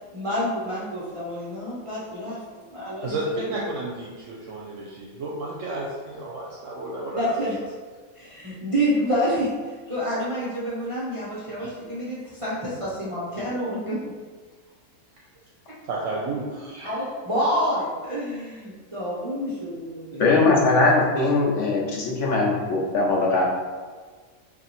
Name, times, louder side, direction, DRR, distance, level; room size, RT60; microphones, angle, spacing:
voice 1, 0.1-2.4 2.7-3.6 7.1-7.6 8.2-14.0 16.8-20.4, equal, 40° right, -9 dB, 0.4 m, -28 dB
voice 2, 3.0-7.3 11.6-11.7 15.8-16.9, right 2 dB, 70° right, -4 dB, 0.9 m, -32 dB
voice 3, 20.2-23.4, left 3 dB, 65° left, -3 dB, 1.0 m, -20 dB
2.9 x 2.6 x 4.0 m, 1.5 s
omnidirectional pair, 1.4 m